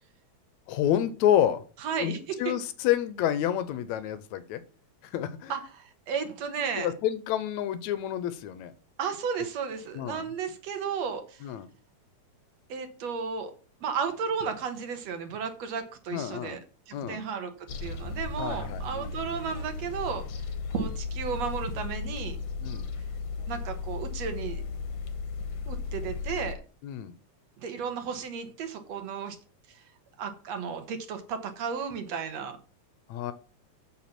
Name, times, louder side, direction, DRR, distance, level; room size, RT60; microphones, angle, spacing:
voice 1, 0.7-1.6 2.0-2.1 2.4-4.6 5.1-5.5 6.8-8.7 10.0-10.3 11.4-11.7 16.1-16.6 16.9-17.2 18.4-19.1 22.6-22.9 26.8-27.1 33.1-33.3, left 11 dB, 80° left, 14 dB, 2.0 m, -28 dB
voice 2, 1.8-2.5 5.5-6.9 9.0-11.5 12.7-13.5 13.8-16.6 16.9-20.2 20.7-22.4 22.7-22.8 23.5-24.6 25.7-26.6 27.6-29.4 29.7-29.8 30.2-32.6, right 6 dB, 65° right, 7 dB, 2.4 m, -34 dB
sound 1, 17.7-26.6, left 4 dB, 60° left, 1.9 m, -35 dB
7.4 x 6.9 x 5.9 m, 0.38 s
omnidirectional pair, 3.4 m